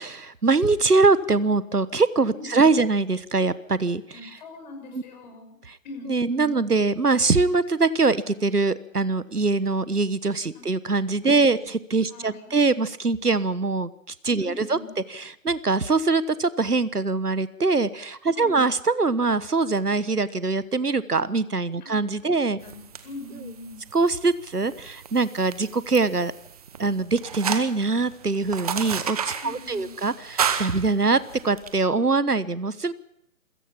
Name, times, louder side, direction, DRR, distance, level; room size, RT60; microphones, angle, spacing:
voice 1, 0.0-4.3 4.9-5.0 5.7-5.8 6.1-14.8 15.1-22.6 23.9-26.3 26.8-32.9, right 3 dB, 85° right, 17 dB, 1.3 m, -23 dB
voice 2, 2.3-2.8 4.1-5.6 5.8-6.7 10.5-10.7 11.3-11.5 12.1-12.6 14.4-14.9 18.3-18.7 21.8-21.9 22.3-23.8 29.4-30.0, left 3 dB, 30° left, 4 dB, 5.6 m, -42 dB
sound 1, 22.6-31.7, right 7 dB, 25° right, 1.2 m, -33 dB
27.5 x 17.0 x 5.9 m, 0.72 s
figure-of-eight pair, 145°, 45 cm